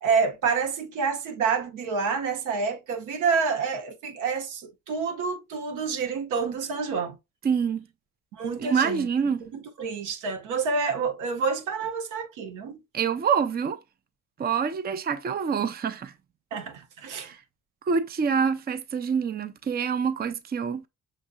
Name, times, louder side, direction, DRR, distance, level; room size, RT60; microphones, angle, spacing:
voice 1, 0.0-7.2 8.3-9.1 9.5-12.8 16.5-17.3, right 5 dB, 90° right, 1.0 m, -28 dB
voice 2, 7.4-7.8 8.6-9.4 12.9-13.8 14.4-16.1 17.2-17.4 17.9-20.9, right 6 dB, 30° right, 0.5 m, -26 dB
6.3 x 2.7 x 2.3 m
cardioid pair, 90°, 30 cm